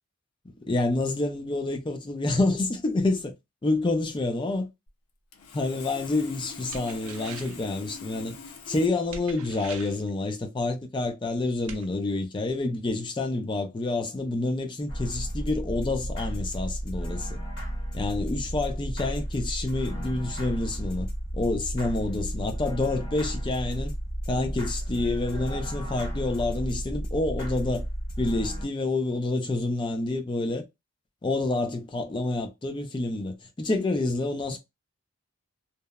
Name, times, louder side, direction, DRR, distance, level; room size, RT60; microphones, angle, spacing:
voice 1, 0.7-3.3 3.6-4.7 5.5-8.4 8.7-17.4 17.9-21.1 21.3-23.9 24.3-27.9 28.2-30.6 31.2-34.6, left 2 dB, 20° left, 0.3 m, -28 dB
Sawing, 4.9-5.0 5.3-8.9, left 5 dB, 85° left, 0.5 m, -43 dB
sound 1, 6.7-7.7 9.1-10.1 11.7-11.8, right 5 dB, 80° right, 0.4 m, -42 dB
sound 2, 14.9-28.7, right 1 dB, 50° left, 1.2 m, -33 dB
2.8 x 2.0 x 2.2 m
head